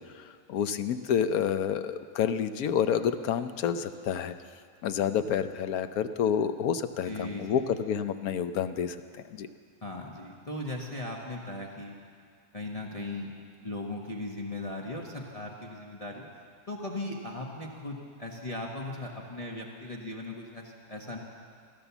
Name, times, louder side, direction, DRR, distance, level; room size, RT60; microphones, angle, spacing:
voice 1, 0.0-4.3 4.8-9.0 9.3-9.5, left 8 dB, 75° left, 10 dB, 1.2 m, -29 dB
voice 2, 7.1-7.7 9.8-12.0 12.5-13.3 13.6-16.3 16.7-21.2, left 2 dB, 25° left, -2 dB, 1.2 m, -38 dB
16.0 x 12.5 x 7.1 m, 2.1 s
omnidirectional pair, 1.6 m